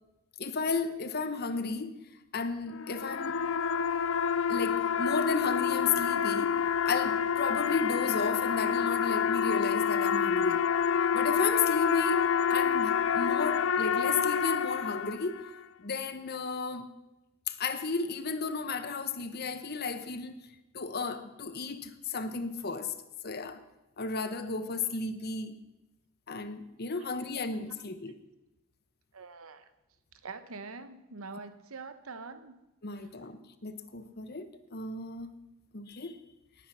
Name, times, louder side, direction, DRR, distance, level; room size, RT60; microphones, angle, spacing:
voice 1, 0.4-1.9 2.3-3.4 4.5-10.7 11.1-15.4 15.8-16.9 17.5-20.3 20.7-22.9 23.2-23.6 24.0-25.5 26.3-28.1 32.8-35.3 35.7-36.2, left 4 dB, 45° left, 1.0 m, -33 dB
sound 1, 2.7-15.5, left 7 dB, 60° left, 0.5 m, -28 dB
voice 2, 29.1-29.7 30.2-32.6, right 4 dB, 75° right, 1.1 m, -44 dB
18.5 x 9.5 x 5.7 m
head